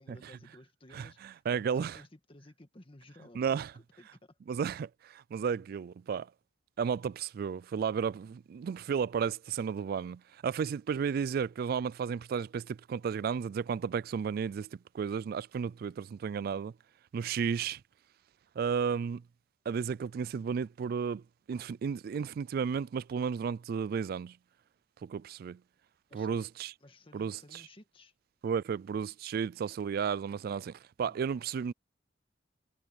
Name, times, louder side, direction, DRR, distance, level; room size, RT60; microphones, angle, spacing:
voice 1, 0.0-4.4 26.1-26.5 26.8-28.1 31.0-31.2, left 1 dB, 30° left, 1.7 m, -56 dB
voice 2, 1.5-2.0 3.3-3.7 4.5-6.3 6.8-16.7 17.1-17.8 18.6-19.2 19.7-21.2 21.5-24.4 25.0-25.6 26.1-26.7 27.1-27.6 28.4-31.7, right 6 dB, 55° right, 0.3 m, -33 dB
head